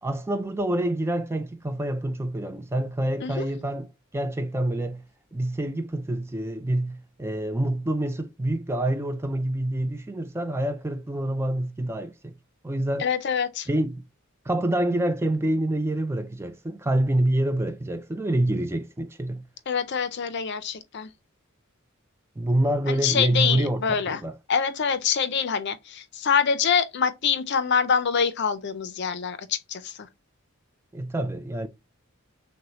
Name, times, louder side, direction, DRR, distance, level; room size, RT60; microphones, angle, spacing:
voice 1, 0.0-3.9 4.1-5.0 5.3-12.3 12.6-13.1 13.7-14.0 14.5-19.4 22.4-24.3 30.9-31.7, right 1 dB, 10° right, 0.3 m, -27 dB
voice 2, 13.0-13.7 19.7-21.1 22.9-24.2 24.5-29.9, left 6 dB, 55° left, 0.5 m, -25 dB
6.2 x 2.2 x 2.8 m
head